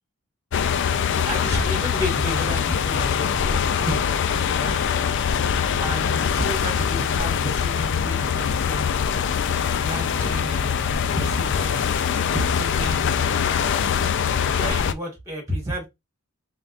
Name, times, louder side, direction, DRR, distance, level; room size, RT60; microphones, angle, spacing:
sound 1, 0.5-14.9, left 7 dB, 55° left, 0.3 m, -23 dB
voice 1, 1.1-4.9 5.8-9.2 9.8-11.9 12.3-13.1 14.5-15.9, right 1 dB, 15° right, 1.7 m, -31 dB
3.6 x 3.5 x 2.5 m
head